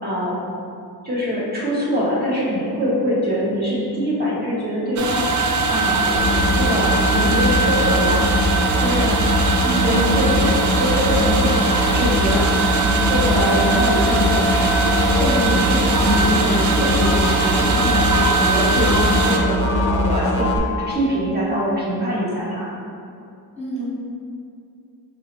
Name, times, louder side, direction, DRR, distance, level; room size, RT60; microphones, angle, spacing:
voice 1, 0.0-0.4 1.0-5.3 5.7-6.1 6.5-8.3 8.8-9.3 9.8-10.3 10.8-14.9 15.2-20.6 20.9-22.8, equal, 25° right, -10 dB, 0.8 m, -23 dB
sound 1, 5.0-19.4, right 3 dB, 45° right, 0.4 m, -21 dB
sound 2, 6.1-20.6, left 1 dB, 45° left, 0.5 m, -22 dB
voice 2, 9.6-10.6 23.6-23.8, equal, 15° left, -8 dB, 1.1 m, -26 dB
sound 3, 15.0-15.7 15.9-16.4 16.7-18.4 18.8-19.3 19.6-20.1 20.4-21.2 21.5-21.6, left 3 dB, 80° right, 1.5 m, -28 dB
4.0 x 2.3 x 2.9 m, 2.5 s
cardioid pair, 85°, 43 cm